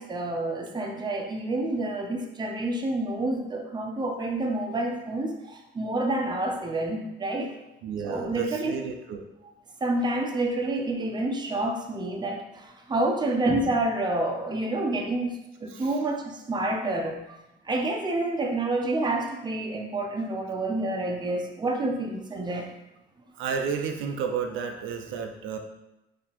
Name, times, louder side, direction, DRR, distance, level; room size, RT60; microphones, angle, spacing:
voice 1, 0.0-7.5 8.0-8.8 9.8-15.3 15.6-17.2 17.6-22.7, right 2 dB, 20° right, 3 dB, 0.5 m, -28 dB
voice 2, 7.8-9.3 15.7-15.9 23.4-25.6, right 6 dB, 85° right, 4 dB, 0.5 m, -32 dB
4.0 x 2.8 x 2.9 m, 0.92 s
cardioid pair, 90°, 20 cm